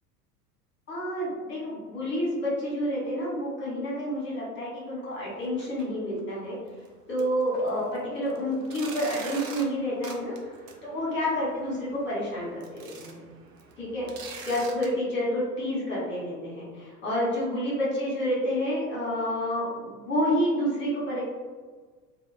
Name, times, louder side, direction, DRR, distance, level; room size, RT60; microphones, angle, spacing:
voice 1, 0.9-6.6 7.1-10.5 10.8-13.2 13.8-21.2, equal, 25° left, -6 dB, 1.1 m, -29 dB
sound 1, 5.4-5.8 6.2-6.3 6.8-6.9 7.2-14.9, right 4 dB, 55° right, 0.5 m, -44 dB
2.8 x 2.0 x 2.4 m, 1.5 s
figure-of-eight pair, 80°, 47 cm